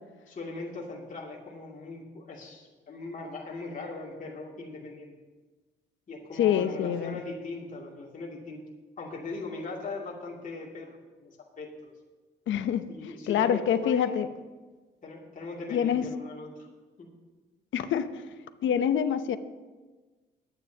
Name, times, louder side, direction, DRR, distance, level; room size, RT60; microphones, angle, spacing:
voice 1, 0.3-5.1 6.1-8.6 9.0-11.9 12.9-14.2 15.0-16.7 17.0-17.1, left 3 dB, 40° left, -3 dB, 2.6 m, -39 dB
voice 2, 6.4-7.2 12.5-14.3 15.7-16.1 17.7-18.3 18.6-19.4, left 9 dB, 75° left, 11 dB, 0.8 m, -26 dB
21.5 x 9.2 x 2.9 m, 1.3 s
cardioid pair, 90°, 20 cm